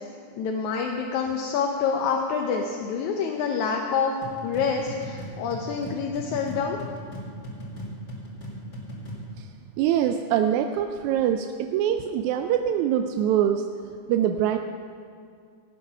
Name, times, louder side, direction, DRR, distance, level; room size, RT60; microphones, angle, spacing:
voice 1, 0.4-4.1 4.4-6.8, left 6 dB, 75° left, 1 dB, 2.1 m, -27 dB
sound 1, 4.2-9.3, right 1 dB, 30° left, 2.4 m, -38 dB
voice 2, 9.8-13.6 14.1-14.6, right 10 dB, 80° right, 6 dB, 1.8 m, -24 dB
17.0 x 9.1 x 5.7 m, 2.3 s
omnidirectional pair, 3.6 m